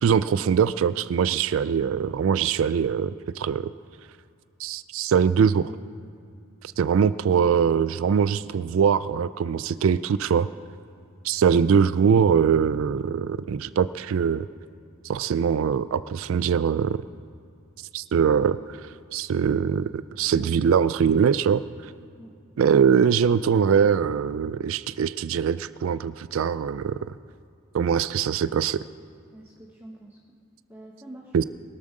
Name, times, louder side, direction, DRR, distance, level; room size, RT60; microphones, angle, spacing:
voice 1, 0.0-3.7 4.6-5.7 6.8-10.5 11.2-14.5 15.0-17.0 17.9-18.8 19.1-21.6 22.6-27.0 27.7-28.8 31.3-31.4, right 7 dB, 70° right, 16 dB, 0.3 m, -22 dB
voice 2, 29.3-30.4 30.7-31.4, right 1 dB, 10° right, -2 dB, 1.0 m, -46 dB
21.5 x 7.4 x 6.5 m, 2.3 s
head